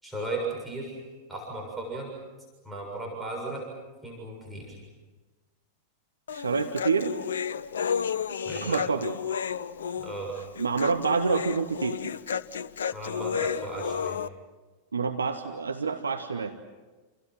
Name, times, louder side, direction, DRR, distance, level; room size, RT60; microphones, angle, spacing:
voice 1, 0.0-1.0 1.3-2.1 2.6-3.6 4.0-4.8 8.5-8.8 10.0-10.3 12.9-14.2, right 2 dB, 5° right, -2 dB, 7.0 m, -35 dB
Human voice, 6.3-14.3, left 7 dB, 65° left, 0.8 m, -32 dB
voice 2, 6.3-7.2 8.6-9.1 10.6-12.0 14.9-16.5, right 5 dB, 75° right, 6 dB, 1.3 m, -27 dB
29.5 x 29.0 x 6.1 m, 1.3 s
figure-of-eight pair, 90°, 0 cm